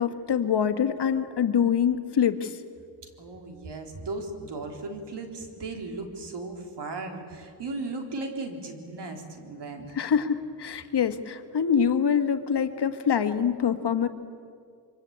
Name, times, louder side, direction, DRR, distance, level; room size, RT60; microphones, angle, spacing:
voice 1, 0.0-2.6 10.0-14.1, left 7 dB, 75° left, 7 dB, 1.8 m, -25 dB
voice 2, 3.2-10.0, right 3 dB, 80° right, 4 dB, 3.8 m, -36 dB
25.0 x 24.5 x 8.8 m, 2.2 s
wide cardioid pair, 110°, 41 cm